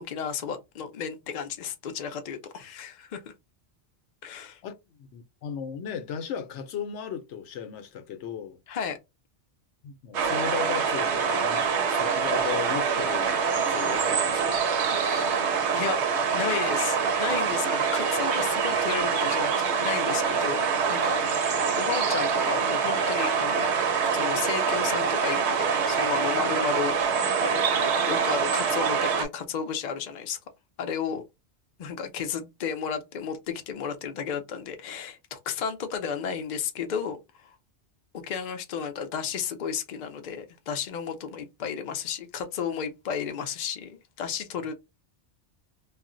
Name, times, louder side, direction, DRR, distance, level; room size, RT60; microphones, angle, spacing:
voice 1, 0.0-3.3 4.2-4.6 8.7-9.0 15.0-16.0 16.3-19.5 19.8-21.4 21.8-27.0 27.4-30.4 30.8-31.2 31.8-37.5 38.1-44.7, left 7 dB, 50° left, 0.6 m, -33 dB
voice 2, 5.0-8.6 9.8-14.6, left 8 dB, 90° left, 0.9 m, -36 dB
sound 1, 10.1-29.3, right 6 dB, 80° right, 1.0 m, -25 dB
2.4 x 2.0 x 3.6 m
omnidirectional pair, 1.1 m